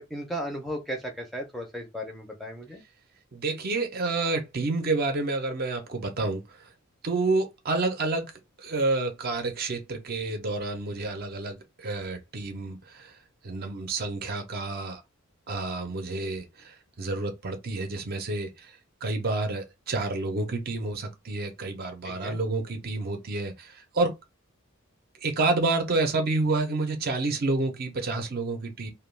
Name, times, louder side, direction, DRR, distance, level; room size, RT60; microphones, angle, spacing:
voice 1, 0.0-2.8 22.0-22.4, equal, ahead, 0.5 m, -35 dB
voice 2, 3.3-6.7 7.0-8.3 8.6-13.2 13.4-15.0 15.5-24.1 25.2-28.9, right 3 dB, 45° right, 0.5 m, -29 dB
2.2 x 2.2 x 3.1 m
head